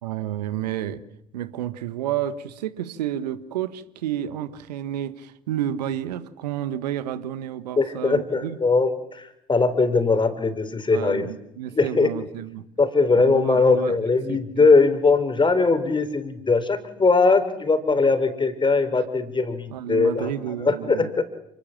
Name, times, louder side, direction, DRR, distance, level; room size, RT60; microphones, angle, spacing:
voice 1, 0.0-1.0 1.3-8.6 10.9-12.7 13.1-13.9 14.3-14.7 19.7-21.1, right 11 dB, 70° right, 13 dB, 1.5 m, -30 dB
voice 2, 7.8-11.3 11.7-12.1 12.8-20.3 20.6-21.2, left 4 dB, 25° left, 11 dB, 4.0 m, -20 dB
29.0 x 20.5 x 7.4 m, 0.79 s
figure-of-eight pair, 60°, 21 cm